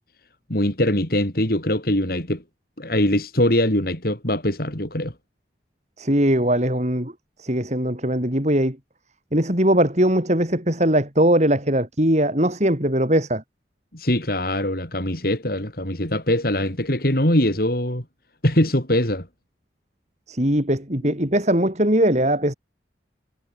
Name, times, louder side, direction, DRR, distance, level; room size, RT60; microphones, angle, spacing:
voice 1, 0.5-2.4 2.8-5.1 13.9-18.0 18.4-19.3 21.0-21.1, left 1 dB, 55° left, 5.1 m, -22 dB
voice 2, 6.0-7.1 7.4-8.8 9.3-13.4 20.3-22.5, right 1 dB, 40° right, 5.2 m, -20 dB
head